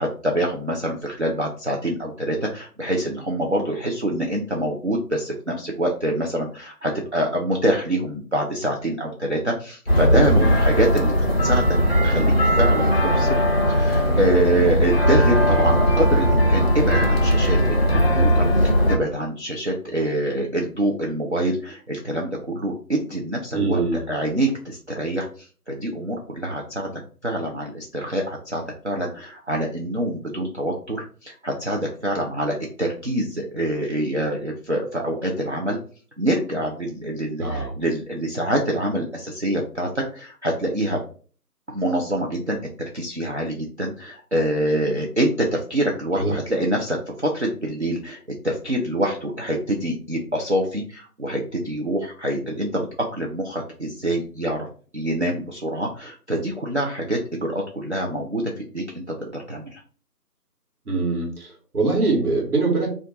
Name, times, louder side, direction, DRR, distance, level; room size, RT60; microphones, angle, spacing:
voice 1, 0.0-11.1 11.4-11.8 12.0-13.4 13.7-26.9 27.2-35.8 36.2-41.0 41.7-48.2 48.4-54.7 54.9-59.8, right 1 dB, 50° right, -1 dB, 0.5 m, -25 dB
sound 1, 9.9-19.0, equal, 40° left, 0.5 m, -18 dB
voice 2, 10.1-10.6 23.5-24.0 37.4-37.8 46.2-46.3 60.9-62.9, right 3 dB, 65° right, -1 dB, 1.4 m, -23 dB
2.5 x 2.2 x 4.0 m, 0.41 s
figure-of-eight pair, 165°, 48 cm